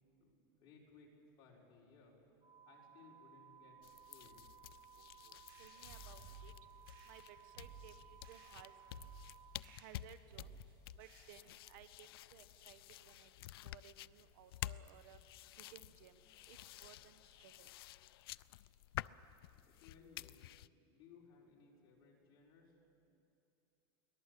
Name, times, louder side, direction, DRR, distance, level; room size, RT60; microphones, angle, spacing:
voice 1, 0.6-1.1 1.4-2.2 2.7-3.8 4.1-4.3 19.7-20.4 20.9-22.7, left 5 dB, 35° left, -3 dB, 5.0 m, -62 dB
sound 1, 2.4-9.5, right 9 dB, 30° right, 3.0 m, -61 dB
sound 2, 3.8-20.7, left 15 dB, 85° left, 0.4 m, -51 dB
voice 2, 5.0-6.5 7.1-8.7 9.6-10.6 11.0-13.3 13.6-15.2 15.6-16.2 16.5-17.7, right 11 dB, 55° right, 11 dB, 1.1 m, -60 dB
sound 3, 5.5-11.7, right 3 dB, 85° right, 7.6 m, -58 dB
23.5 x 18.5 x 8.4 m, 2.7 s
supercardioid pair, 165°, 12 cm